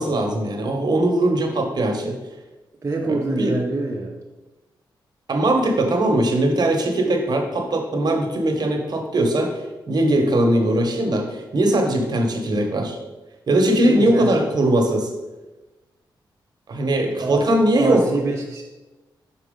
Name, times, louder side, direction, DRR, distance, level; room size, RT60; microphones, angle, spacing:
voice 1, 0.0-2.2 3.1-3.5 5.3-13.0 13.5-15.1 16.7-18.0, right 1 dB, 55° right, 3 dB, 1.1 m, -20 dB
voice 2, 2.8-4.2 13.9-14.6 17.2-17.4 17.7-18.6, right 3 dB, 35° right, -1 dB, 0.7 m, -26 dB
6.1 x 4.4 x 3.7 m, 1.1 s
cardioid pair, 65°, 9 cm